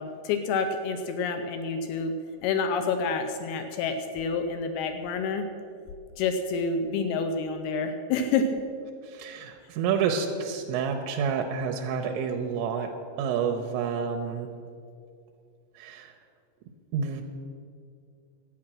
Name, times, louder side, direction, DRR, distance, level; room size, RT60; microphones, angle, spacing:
voice 1, 0.0-5.5 6.2-8.5, left 4 dB, 85° left, 7 dB, 2.2 m, -28 dB
voice 2, 9.0-12.9 13.2-14.5 15.8-16.1 16.9-17.2, right 6 dB, 85° right, 3 dB, 3.0 m, -29 dB
12.0 x 8.6 x 6.1 m, 2.4 s
omnidirectional pair, 5.2 m